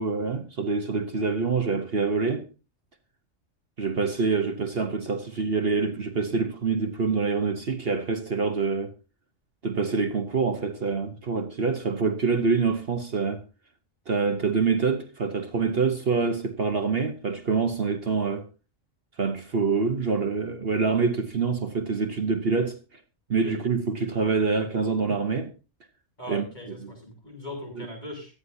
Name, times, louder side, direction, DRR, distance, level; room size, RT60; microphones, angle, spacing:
voice 1, 0.0-2.5 3.8-8.9 9.6-13.4 14.1-18.5 19.2-23.0 23.3-25.5 26.3-26.4 26.8-26.9 27.8-27.9, right 4 dB, 50° right, 1.3 m, -26 dB
voice 2, 26.2-28.4, left 1 dB, 35° left, 7.6 m, -39 dB
24.5 x 9.6 x 2.8 m
omnidirectional pair, 1.3 m